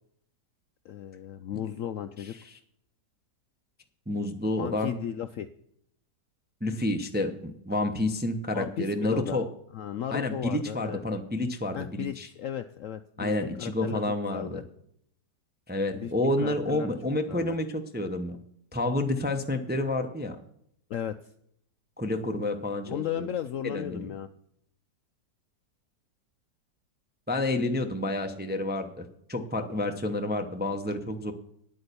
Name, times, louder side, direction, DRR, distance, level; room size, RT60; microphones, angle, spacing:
voice 1, 0.8-2.3 4.6-5.5 8.5-9.4 9.7-11.0 11.7-14.6 15.9-16.1 16.4-16.9 17.3-17.6 20.9-21.3 22.8-24.3, left 10 dB, 70° left, 10 dB, 0.8 m, -35 dB
voice 2, 4.1-5.0 6.6-9.4 10.1-12.3 13.2-14.6 15.7-18.3 18.7-20.4 22.0-23.0 23.6-24.1 27.3-31.3, left 1 dB, 10° right, 5 dB, 0.5 m, -29 dB
9.6 x 8.6 x 6.8 m, 0.70 s
omnidirectional pair, 1.8 m